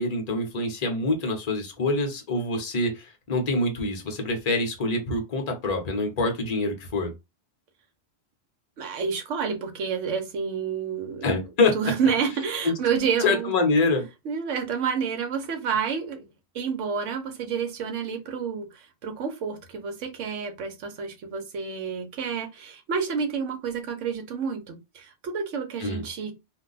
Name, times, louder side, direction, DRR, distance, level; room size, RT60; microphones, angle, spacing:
voice 1, 0.0-7.1 11.2-11.9 12.6-12.8 13.2-14.1 25.8-26.0, left 2 dB, 35° left, 0.8 m, -25 dB
voice 2, 8.8-11.3 11.7-13.5 14.2-16.2 16.5-26.3, right 6 dB, 75° right, 1.0 m, -29 dB
2.6 x 2.2 x 3.9 m
omnidirectional pair, 1.3 m